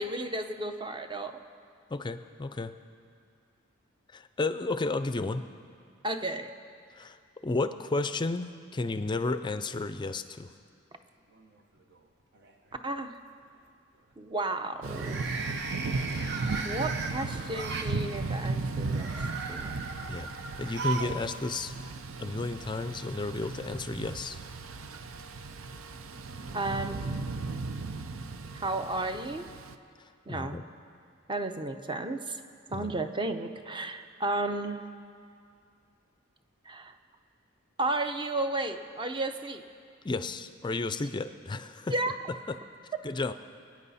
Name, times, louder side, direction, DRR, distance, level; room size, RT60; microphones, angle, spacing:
voice 1, 0.0-1.4 6.0-6.5 12.8-13.2 14.2-15.2 16.6-19.1 19.5-19.8 26.5-27.1 28.5-29.5 30.3-30.6 31.3-32.4 32.7-34.8 36.7-36.9 37.8-39.6 41.9-42.1, right 2 dB, 25° right, 8 dB, 0.7 m, -33 dB
voice 2, 1.9-2.7 4.1-5.4 7.0-7.2 7.4-10.5 20.1-21.7 22.2-24.4 30.3-30.6 32.7-32.9 40.0-41.9 43.0-43.3, left 3 dB, 25° left, 10 dB, 0.4 m, -32 dB
sound 1, 11.3-12.0 12.4-12.7 14.8-17.9 18.8-21.2 21.5-21.6 22.7-22.8, right 4 dB, 55° right, 1.0 m, -37 dB
Thunder / Rain, 14.8-29.7, right 3 dB, 80° right, 0.6 m, -36 dB
26.0 x 9.3 x 4.2 m, 2.3 s
head